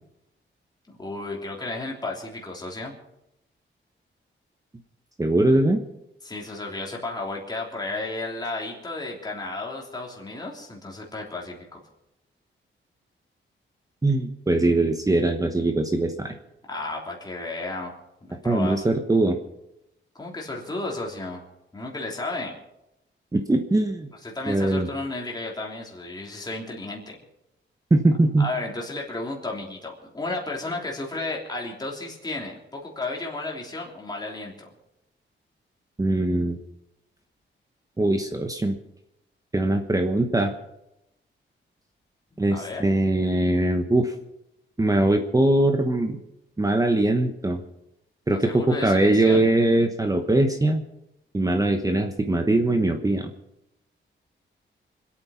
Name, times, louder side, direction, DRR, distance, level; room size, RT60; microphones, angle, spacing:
voice 1, 0.9-2.9 6.2-11.8 16.7-17.9 18.2-18.8 20.2-21.4 21.7-22.6 24.2-27.1 28.4-34.5 42.3-42.8 48.3-49.4, left 2 dB, 20° left, -2 dB, 3.3 m, -33 dB
voice 2, 5.2-5.8 14.0-16.3 18.4-19.4 23.3-24.1 24.5-24.9 27.9-28.5 36.0-36.6 38.0-38.8 39.5-40.5 42.4-44.1 44.8-46.2 46.6-47.6 48.3-50.8 51.3-53.3, right 2 dB, 15° right, 5 dB, 1.1 m, -21 dB
26.0 x 8.8 x 5.7 m, 0.86 s
wide cardioid pair, 140°, 21 cm